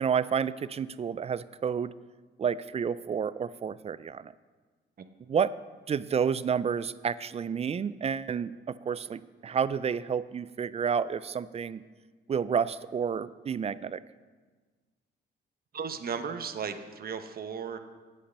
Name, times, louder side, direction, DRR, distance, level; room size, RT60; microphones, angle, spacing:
voice 1, 0.0-1.9 2.4-4.3 5.3-5.6 5.9-11.8 12.3-14.0, right 7 dB, 30° right, 17 dB, 0.4 m, -30 dB
voice 2, 15.7-17.8, right 6 dB, 50° right, 8 dB, 1.0 m, -35 dB
8.6 x 8.4 x 5.5 m, 1.4 s
cardioid pair, 90°, 20 cm